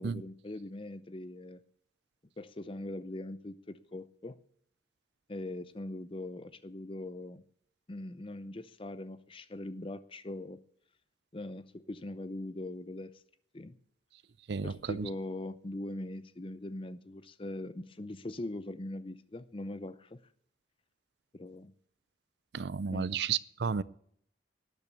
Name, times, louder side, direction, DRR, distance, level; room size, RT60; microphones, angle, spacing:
voice 1, 0.0-1.6 2.4-4.4 5.3-7.4 7.9-10.6 11.3-13.2 13.5-13.8 14.6-20.2 21.3-21.7 22.9-23.1, left 1 dB, 30° left, 0.6 m, -41 dB
voice 2, 14.5-15.1 22.5-23.8, right 6 dB, 60° right, 0.5 m, -32 dB
12.5 x 8.8 x 6.9 m
head